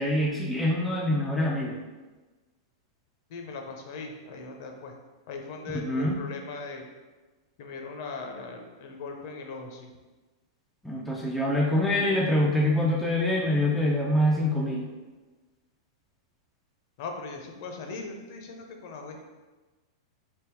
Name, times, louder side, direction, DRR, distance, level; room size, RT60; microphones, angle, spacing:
voice 1, 0.0-1.8 5.7-6.1 10.8-14.9, left 1 dB, ahead, -3 dB, 0.3 m, -25 dB
voice 2, 3.3-4.9 5.3-6.8 7.6-9.9 17.0-19.2, left 4 dB, 45° left, 3 dB, 0.6 m, -39 dB
3.4 x 2.8 x 4.5 m, 1.2 s
supercardioid pair, 170°, 3 cm